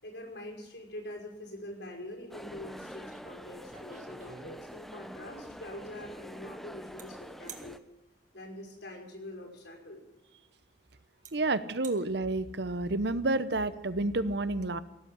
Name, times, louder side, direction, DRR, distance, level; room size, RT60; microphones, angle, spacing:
voice 1, 0.0-7.8 8.3-10.0, left 1 dB, 65° left, 1 dB, 5.7 m, -44 dB
sound 1, 2.3-7.8, equal, ahead, 0.7 m, -46 dB
sound 2, 3.1-3.2 3.6-5.0 7.0-7.1 7.5-7.7 9.6-9.7 10.6-10.7 11.2-11.3 11.7-12.0, right 6 dB, 40° right, 1.9 m, -48 dB
voice 2, 11.3-14.8, right 2 dB, 60° right, 14 dB, 0.9 m, -30 dB
17.5 x 8.3 x 9.9 m, 1.0 s
head